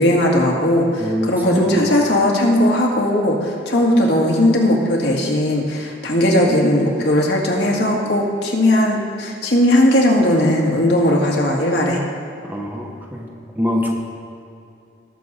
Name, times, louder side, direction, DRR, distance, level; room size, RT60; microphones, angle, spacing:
voice 1, 0.0-12.0, left 1 dB, 65° left, -1 dB, 2.0 m, -17 dB
voice 2, 1.0-1.8 12.5-13.3 13.5-13.9, equal, 10° right, -1 dB, 1.1 m, -23 dB
19.0 x 6.7 x 4.1 m, 2.6 s
head